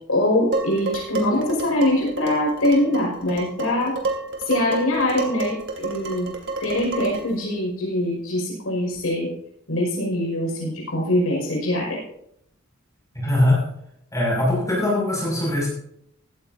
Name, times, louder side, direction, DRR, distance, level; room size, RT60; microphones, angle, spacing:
voice 1, 0.1-4.0 4.5-6.3 6.6-9.3 9.7-12.0, left 1 dB, 85° left, -1 dB, 5.4 m, -23 dB
Dishes pots and pans, 0.5-7.4, right 3 dB, 60° right, 2.4 m, -30 dB
voice 2, 13.1-13.7 14.1-15.7, left 1 dB, 15° left, -4 dB, 6.0 m, -21 dB
16.5 x 13.5 x 2.7 m, 0.74 s
head